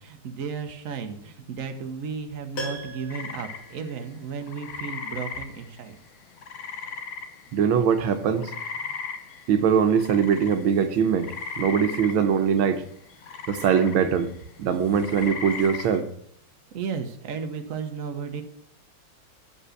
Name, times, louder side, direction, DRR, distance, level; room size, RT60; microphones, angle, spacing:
voice 1, 0.0-6.0 16.7-18.4, right 6 dB, 50° right, 1.2 m, -34 dB
Piano, 2.5-4.6 4.9-5.0, equal, 80° left, 3.3 m, -39 dB
sound 1, 3.1-7.8 8.0-16.0, left 5 dB, 60° left, 0.8 m, -38 dB
voice 2, 7.5-8.5 9.5-12.8 13.5-14.3 14.6-16.1, right 7 dB, 85° right, 1.7 m, -22 dB
9.8 x 5.4 x 6.4 m
omnidirectional pair, 2.1 m